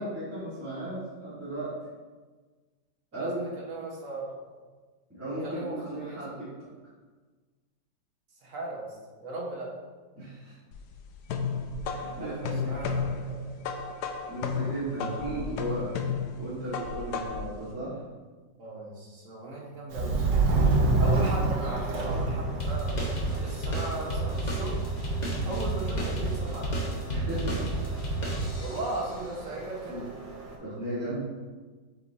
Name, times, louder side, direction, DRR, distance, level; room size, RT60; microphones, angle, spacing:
voice 1, 0.0-1.7 3.1-3.4 5.1-6.5 10.2-10.6 11.8-12.9 14.3-15.9 16.3-18.0 20.8-21.2 27.1-27.6 29.9-30.0 30.6-31.2, right 1 dB, 10° right, -11 dB, 1.4 m, -35 dB
voice 2, 3.1-4.6 5.4-6.2 8.4-9.7 12.2-13.4 18.6-20.5 21.0-24.8 25.4-26.9 28.6-30.0, right 2 dB, 50° right, -4 dB, 1.6 m, -37 dB
sound 1, 10.7-17.6, left 5 dB, 75° left, 1.1 m, -33 dB
Subway metro underground, 19.9-30.5, right 3 dB, 75° right, 1.6 m, -30 dB
sound 2, 22.6-29.0, right 1 dB, 30° left, 1.0 m, -31 dB
8.1 x 4.3 x 2.8 m, 1.4 s
omnidirectional pair, 1.9 m